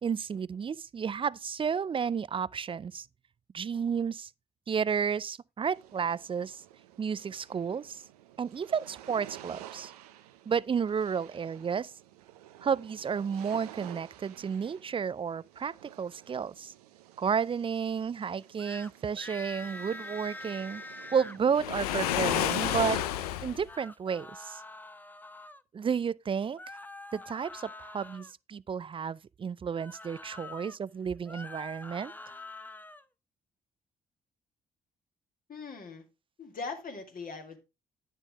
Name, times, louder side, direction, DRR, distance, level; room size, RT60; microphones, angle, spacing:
voice 1, 0.0-3.1 3.5-4.3 4.7-6.6 7.0-8.0 8.4-9.9 10.5-11.9 12.6-16.7 17.2-20.8 21.1-23.0 23.4-24.6 25.7-26.6 27.1-32.1, right 6 dB, 30° right, 0.4 m, -32 dB
sound 1, 5.7-23.0, right 13 dB, 90° right, 0.6 m, -50 dB
sound 2, 18.6-18.9 19.2-21.4 23.5-25.6 26.6-28.3 29.7-30.8 31.2-33.0, left 2 dB, 10° left, 0.6 m, -45 dB
Waves surf, 21.5-23.6, left 12 dB, 90° left, 0.5 m, -30 dB
voice 2, 35.5-36.1 36.4-37.6, left 4 dB, 50° left, 2.3 m, -40 dB
9.9 x 6.6 x 3.5 m
hypercardioid pair, 45°, 19 cm